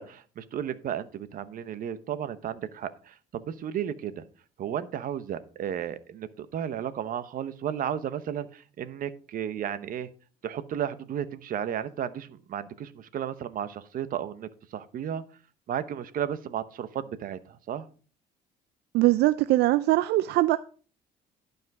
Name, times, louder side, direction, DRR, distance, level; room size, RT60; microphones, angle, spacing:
voice 1, 0.0-4.2 4.6-10.1 10.4-15.2 15.7-17.8, right 9 dB, 55° right, 0.9 m, -33 dB
voice 2, 18.9-20.6, right 17 dB, 75° right, 0.4 m, -22 dB
11.5 x 5.3 x 4.8 m
cardioid pair, 110°, 17 cm